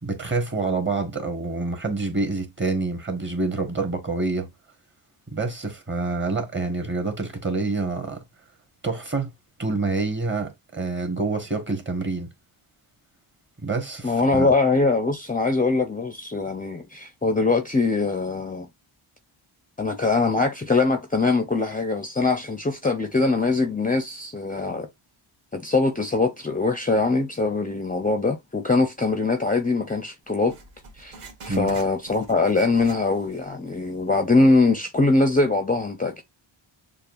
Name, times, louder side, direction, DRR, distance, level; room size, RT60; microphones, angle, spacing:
voice 1, 0.0-4.5 5.3-8.2 8.8-9.3 9.6-12.3 13.6-14.5 31.5-31.7, right 3 dB, 25° right, 1.5 m, -27 dB
voice 2, 14.0-18.7 19.8-24.9 25.5-30.6 31.0-31.2 31.4-36.2, left 3 dB, 15° left, 0.7 m, -22 dB
Writing, 30.5-33.5 33.8-33.9 34.6-34.7, right 4 dB, 75° right, 1.8 m, -45 dB
6.8 x 2.3 x 2.6 m
cardioid pair, 90°, 49 cm